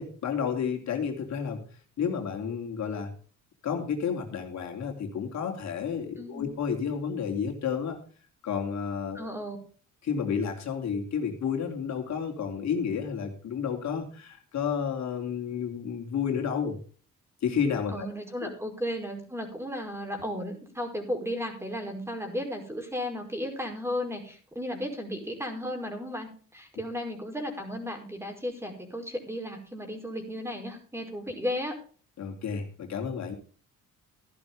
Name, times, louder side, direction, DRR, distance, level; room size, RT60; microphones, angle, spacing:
voice 1, 0.0-1.6 2.0-3.1 3.6-8.0 8.4-9.3 10.0-16.8 17.4-18.1 18.4-18.5 32.2-33.3, left 7 dB, 65° left, 3 dB, 3.3 m, -31 dB
voice 2, 6.2-6.5 9.1-9.6 17.9-31.8, left 1 dB, 10° right, 4 dB, 5.1 m, -34 dB
14.5 x 11.0 x 3.6 m, 0.41 s
cardioid pair, 90°, 30 cm